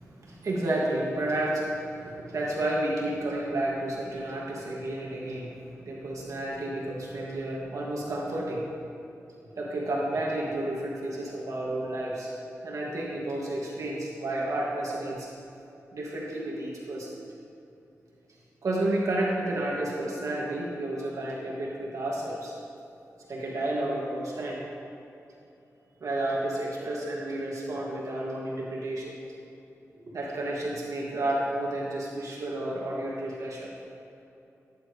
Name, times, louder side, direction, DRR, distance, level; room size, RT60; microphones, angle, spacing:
voice 1, 0.0-5.5 5.8-8.7 9.6-12.3 12.6-15.3 15.9-17.2 18.6-22.6 23.3-24.6 26.0-29.2 29.9-33.7, right 1 dB, 75° right, -4 dB, 2.2 m, -31 dB
17.0 x 10.5 x 3.3 m, 2.9 s
wide cardioid pair, 80°, 6 cm